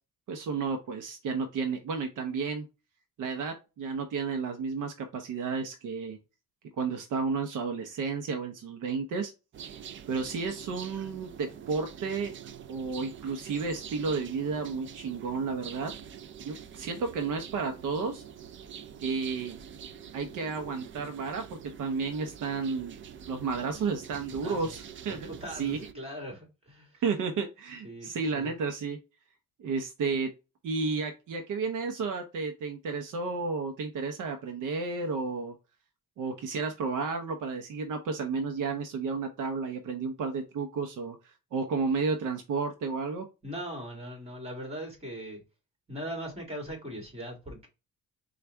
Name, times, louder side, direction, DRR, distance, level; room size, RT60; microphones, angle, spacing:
voice 1, 0.3-2.6 3.2-6.2 6.8-9.3 9.6-9.8 10.1-12.3 12.7-15.9 16.4-18.2 19.0-19.6 20.1-23.0 23.3-25.8 27.0-29.0 29.6-30.3 30.6-35.5 36.2-43.3, right 4 dB, 70° right, 0.8 m, -32 dB
sound 1, 9.5-25.9, right 8 dB, 40° right, 0.4 m, -46 dB
voice 2, 24.4-24.7 25.1-27.0 27.8-28.6 43.4-45.4 45.9-47.7, equal, 20° right, 2.0 m, -40 dB
4.3 x 2.4 x 3.4 m
cardioid pair, 120°, 33 cm